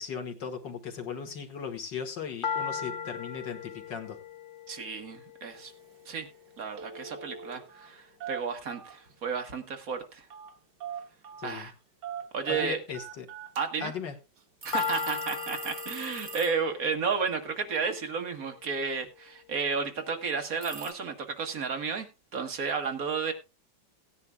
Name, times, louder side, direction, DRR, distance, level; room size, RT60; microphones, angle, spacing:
voice 1, 0.0-4.2 11.4-11.7 12.5-13.3 13.8-14.2, left 6 dB, 85° left, 2.3 m, -37 dB
sound 1, 2.4-6.4 14.7-18.8, left 6 dB, 45° left, 0.7 m, -38 dB
voice 2, 4.7-5.7 6.1-6.3 6.6-10.3 11.4-11.7 12.3-12.8 13.6-13.9 14.6-22.1 22.3-23.3, right 5 dB, 55° right, 1.6 m, -32 dB
Telephone, 5.5-5.7 6.0-6.3 6.6-7.9 8.2-9.1 10.3-10.5 10.8-11.5 12.0-14.0 14.4-14.5 15.1-15.2, right 8 dB, 75° right, 1.8 m, -41 dB
sound 2, 14.6-16.7 20.6-20.9, right 4 dB, 30° right, 1.2 m, -42 dB
17.5 x 9.7 x 2.3 m
omnidirectional pair, 1.9 m